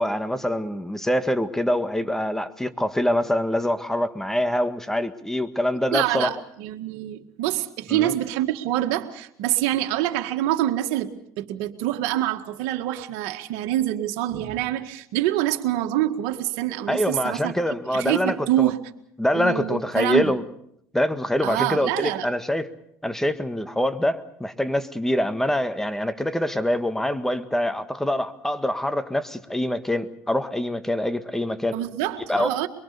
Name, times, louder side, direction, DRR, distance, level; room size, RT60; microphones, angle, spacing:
voice 1, 0.0-6.3 7.9-8.1 16.9-18.7 19.2-20.4 20.9-22.7 23.0-31.8 32.3-32.5, left 1 dB, 5° left, 1.8 m, -25 dB
voice 2, 5.9-17.5 17.9-18.8 19.3-20.3 21.4-22.3 31.7-32.7, right 14 dB, 75° right, 1.9 m, -26 dB
23.0 x 23.0 x 6.9 m
supercardioid pair, 80°, 7 cm